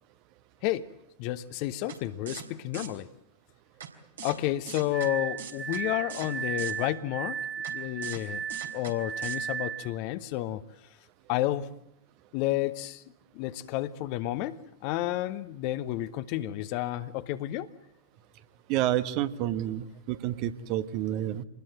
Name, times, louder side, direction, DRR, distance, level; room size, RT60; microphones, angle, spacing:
voice 1, 1.2-3.1 4.2-7.4 7.7-8.4 8.7-10.6 11.3-11.7 12.3-13.0 13.3-17.7, left 14 dB, 45° left, 13 dB, 1.1 m, -31 dB
sound 1, 1.9-2.0 2.3-2.4 2.7-2.9 3.8-3.9 4.2-4.4 4.7-5.1 5.4-5.8 6.1-6.3 6.6-6.7 7.6-7.7 8.0-8.2 8.5-8.9 9.2-9.4, right 7 dB, 65° right, 3.6 m, -40 dB
Glass, 4.9-10.0, right 8 dB, 20° right, 2.1 m, -35 dB
voice 2, 18.7-21.4, right 12 dB, 45° right, 11 dB, 1.2 m, -29 dB
26.0 x 20.5 x 7.8 m, 0.78 s
figure-of-eight pair, 90°, 0 cm